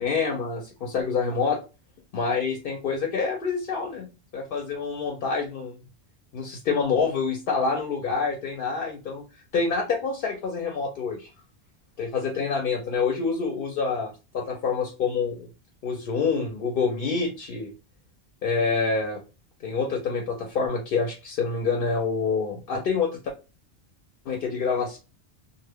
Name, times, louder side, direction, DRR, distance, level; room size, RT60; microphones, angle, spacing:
voice 1, 0.0-1.6 2.1-4.1 4.3-5.8 6.3-9.3 9.5-11.3 12.0-15.5 15.8-17.7 18.4-19.2 19.6-23.2 24.3-25.0, left 5 dB, 60° left, 3 dB, 0.7 m, -27 dB
2.1 x 2.0 x 3.3 m, 0.30 s
omnidirectional pair, 1.1 m